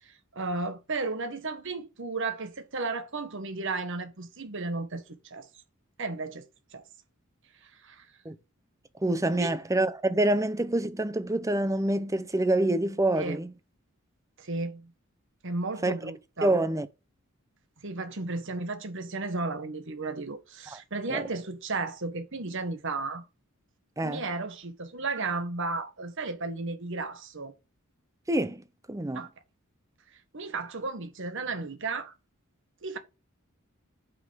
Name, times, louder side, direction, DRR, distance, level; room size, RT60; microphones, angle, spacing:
voice 1, 0.0-5.5 6.0-6.4 6.7-6.9 7.6-8.1 9.4-9.5 13.1-13.4 14.4-14.9 15.4-16.5 17.8-23.3 24.0-27.5 29.1-29.3 30.3-32.1 32.8-33.0, right 3 dB, 60° right, 1.5 m, -34 dB
voice 2, 9.0-13.5 15.8-15.9 16.4-16.9 20.7-20.8 21.1-21.3 24.0-24.2 28.3-28.6 28.9-29.3, right 1 dB, 15° right, 0.6 m, -26 dB
9.3 x 5.5 x 3.6 m
head